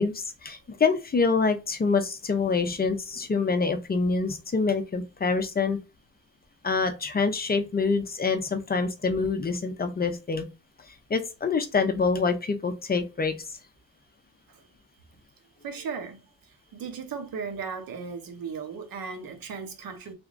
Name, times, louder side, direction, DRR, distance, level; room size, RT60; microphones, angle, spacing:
voice 1, 0.0-5.8 6.6-10.4 11.1-13.3, left 4 dB, 30° left, 0.5 m, -26 dB
voice 2, 15.6-16.2 16.7-20.1, right 5 dB, 80° right, 0.9 m, -36 dB
3.4 x 3.2 x 2.5 m
wide cardioid pair, 135°, 34 cm